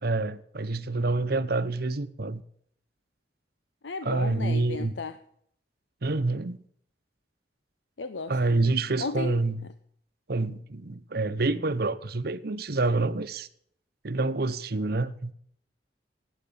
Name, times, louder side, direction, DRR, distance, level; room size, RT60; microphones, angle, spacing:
voice 1, 0.0-2.4 4.0-4.9 6.0-6.6 8.3-9.7 10.3-13.5 14.0-15.3, right 3 dB, 60° right, 0.9 m, -27 dB
voice 2, 3.8-5.1 8.0-8.7 9.0-9.4, left 4 dB, 90° left, 0.8 m, -35 dB
12.5 x 9.0 x 8.8 m
head